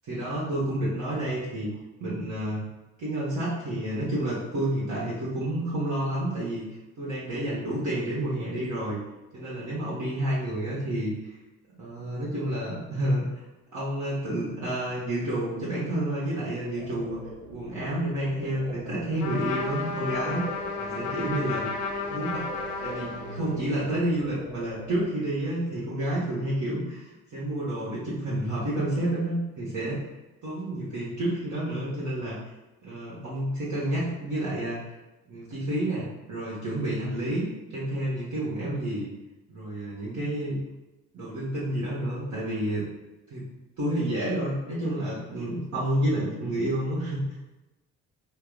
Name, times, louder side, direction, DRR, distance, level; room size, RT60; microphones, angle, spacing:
voice 1, 0.1-1.7 2.0-2.6 3.0-6.6 7.0-9.0 9.3-11.4 11.7-13.3 13.7-17.2 17.5-20.5 20.8-22.5 22.8-30.1 30.4-32.4 32.8-34.9 35.3-39.1 39.5-40.6 41.1-42.8 43.3-43.5 43.8-47.2, right 1 dB, 45° right, -8 dB, 1.3 m, -30 dB
sound 1, 16.8-25.1, right 3 dB, 85° right, 0.7 m, -43 dB
Trumpet, 19.2-23.8, left 4 dB, 70° left, 0.7 m, -33 dB
4.4 x 2.0 x 3.6 m, 1.0 s
hypercardioid pair, 55°, 40 cm